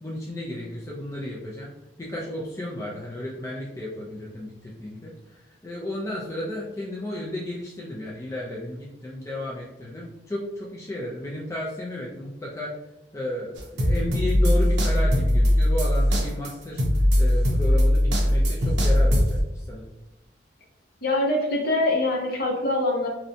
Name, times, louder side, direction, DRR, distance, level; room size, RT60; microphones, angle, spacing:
voice 1, 0.0-1.7 2.0-12.8 13.1-16.8 17.2-19.8, left 1 dB, 15° left, -5 dB, 0.3 m, -33 dB
sound 1, 13.6-19.4, left 1 dB, 65° right, 0.5 m, -20 dB
voice 2, 21.0-23.1, left 2 dB, 50° left, -1 dB, 0.6 m, -24 dB
2.6 x 2.1 x 2.6 m, 0.92 s
head